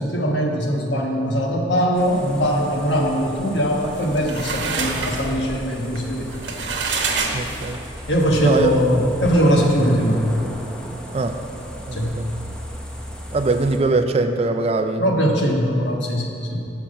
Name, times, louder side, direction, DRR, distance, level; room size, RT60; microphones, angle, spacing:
voice 1, 0.0-6.3 8.1-10.2 11.9-12.1 15.0-16.6, equal, 75° left, 0 dB, 1.3 m, -21 dB
sound 1, 1.9-13.8, equal, 5° left, 0.6 m, -36 dB
sound 2, 3.8-8.0, right 4 dB, 80° right, 1.0 m, -27 dB
voice 2, 7.3-7.8 8.4-8.7 11.1-11.4 11.9-12.3 13.3-15.1 15.4-15.5, right 3 dB, 35° right, 7 dB, 0.4 m, -22 dB
7.0 x 5.8 x 7.5 m, 2.6 s
head